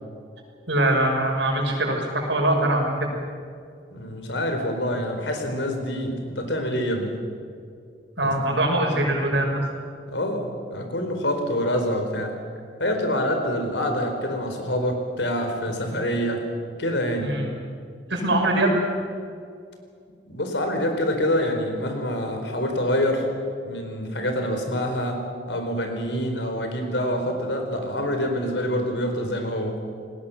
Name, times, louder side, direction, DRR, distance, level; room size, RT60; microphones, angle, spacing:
voice 1, 0.7-3.1 8.2-9.6 17.2-17.5 18.1-18.8, right 1 dB, 85° right, 1 dB, 6.0 m, -22 dB
voice 2, 3.9-7.2 8.2-8.5 10.1-12.4 12.8-16.4 16.8-17.4 20.2-23.3 23.7-29.8, equal, 85° left, 5 dB, 4.5 m, -26 dB
29.0 x 19.5 x 7.3 m, 2.3 s
head